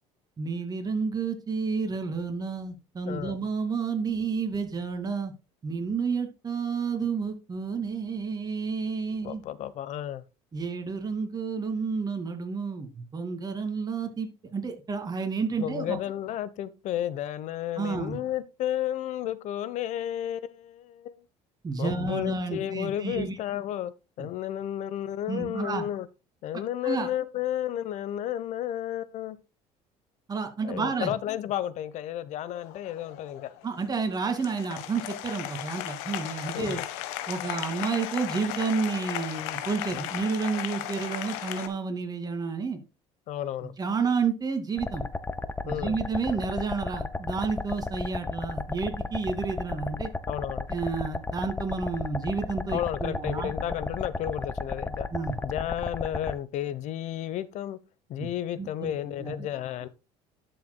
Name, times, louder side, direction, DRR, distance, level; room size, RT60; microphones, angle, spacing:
voice 1, 0.4-5.3 5.6-9.4 10.5-16.0 17.8-18.2 21.6-23.4 25.3-25.8 26.8-27.1 30.3-31.1 33.6-36.8 37.3-42.8 43.6-45.0 45.6-50.1 50.7-53.5 55.1-55.4 58.2-58.3 58.6-59.5, right 5 dB, 30° right, 2.4 m, -30 dB
voice 2, 3.1-3.4 9.2-10.2 15.6-21.2 21.8-23.9 24.2-26.1 26.4-29.4 30.6-33.5 36.5-36.8 43.3-43.7 45.7-45.9 50.3-50.7 52.7-55.1 55.4-57.8 58.1-59.9, left 11 dB, 60° left, 1.0 m, -32 dB
Applause, 32.6-41.7, left 13 dB, 85° left, 1.3 m, -36 dB
sound 1, 44.8-56.3, left 3 dB, 15° left, 0.8 m, -33 dB
12.0 x 6.9 x 2.2 m
supercardioid pair, 100°, 14 cm